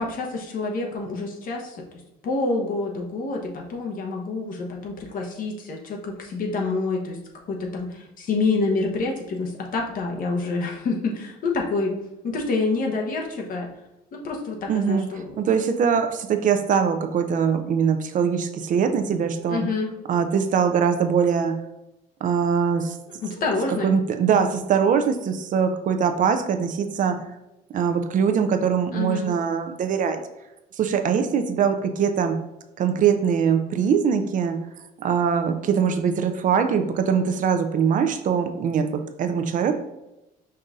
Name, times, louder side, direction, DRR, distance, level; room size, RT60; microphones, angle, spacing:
voice 1, 0.0-1.8 2.2-7.2 7.5-11.9 12.2-13.7 14.1-15.5 19.5-19.9 23.2-23.9 28.9-29.3, left 3 dB, 55° left, 1 dB, 1.0 m, -27 dB
voice 2, 14.7-15.1 15.4-19.6 20.1-21.5 22.2-23.0 23.8-27.2 27.7-30.2 30.8-32.4 32.8-34.6 35.0-39.7, right 7 dB, 50° right, 8 dB, 0.5 m, -22 dB
5.4 x 2.6 x 3.6 m, 0.91 s
cardioid pair, 110°, 17 cm